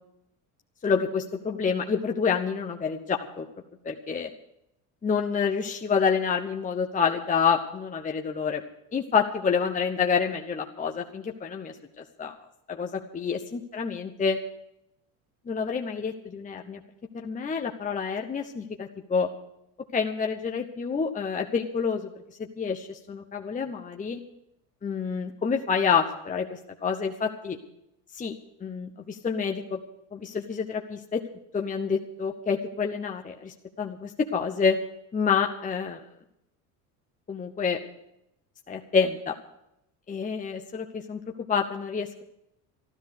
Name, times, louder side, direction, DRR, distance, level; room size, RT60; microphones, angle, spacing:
voice 1, 0.8-3.5 3.8-4.3 5.0-8.6 8.9-12.3 12.7-14.4 15.5-16.8 17.1-19.3 19.9-22.1 22.4-24.2 24.8-27.6 28.1-28.3 28.6-29.8 30.1-31.2 31.5-34.8 35.1-36.0 37.3-37.8 38.7-39.4 40.1-41.2 41.5-42.2, left 6 dB, 20° left, 3 dB, 1.0 m, -28 dB
13.0 x 12.0 x 6.6 m, 0.81 s
supercardioid pair, 105°, 37 cm